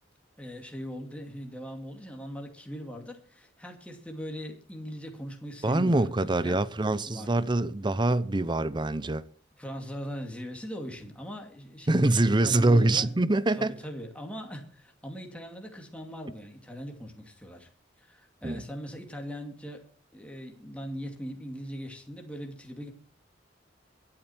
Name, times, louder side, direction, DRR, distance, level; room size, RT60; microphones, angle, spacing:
voice 1, 0.4-6.1 6.4-6.6 7.1-7.3 9.6-13.1 13.5-17.7 18.0-19.9 20.1-22.9, equal, 5° left, 2.4 m, -40 dB
voice 2, 5.6-9.2 11.9-13.8 18.4-18.6, right 2 dB, 25° right, 0.7 m, -24 dB
23.0 x 8.9 x 4.4 m
head